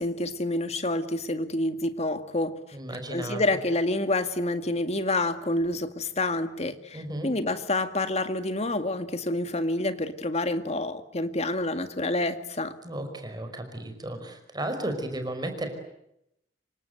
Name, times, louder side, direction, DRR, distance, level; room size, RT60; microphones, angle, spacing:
voice 1, 0.0-2.6 3.1-12.8, left 2 dB, 40° left, 2.0 m, -28 dB
voice 2, 2.7-3.4 6.9-7.3 12.8-15.7, right 1 dB, 25° right, 5.3 m, -34 dB
28.0 x 25.0 x 8.1 m
head